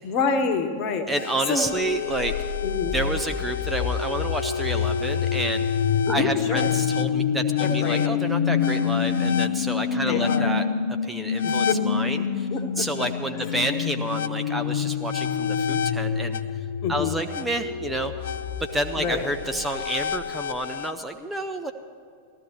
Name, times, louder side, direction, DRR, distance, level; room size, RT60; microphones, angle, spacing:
voice 1, 0.0-1.1 1.5-1.7 2.6-2.9 6.1-6.7 7.6-8.1 10.1-10.5 11.4-11.8 12.5-12.6 13.4-13.5 16.8-17.2 19.0-19.3, left 5 dB, 40° left, 6 dB, 1.2 m, -27 dB
voice 2, 1.1-2.3 2.9-5.7 6.1-10.7 11.0-12.5 12.8-16.4 16.9-18.3 18.6-21.7, right 2 dB, 10° right, 6 dB, 0.6 m, -29 dB
sound 1, 1.2-20.9, left 7 dB, 60° left, 0.5 m, -27 dB
19.0 x 14.0 x 3.0 m, 2.3 s
figure-of-eight pair, 90°, 0 cm